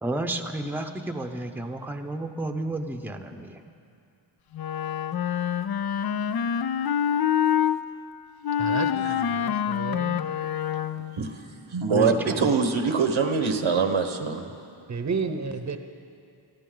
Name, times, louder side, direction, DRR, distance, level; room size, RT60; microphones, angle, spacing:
voice 1, 0.0-3.6 11.9-12.5, right 2 dB, 5° right, 5 dB, 0.7 m, -31 dB
Wind instrument woodwind instrument, 4.5-7.8 8.4-11.2, left 9 dB, 55° left, 0.5 m, -26 dB
voice 2, 8.6-10.2 14.9-15.8, right 4 dB, 35° right, 8 dB, 0.8 m, -32 dB
voice 3, 11.7-14.5, right 5 dB, 85° right, 6 dB, 1.2 m, -23 dB
22.5 x 14.0 x 3.9 m, 2.5 s
wide cardioid pair, 90°, 47 cm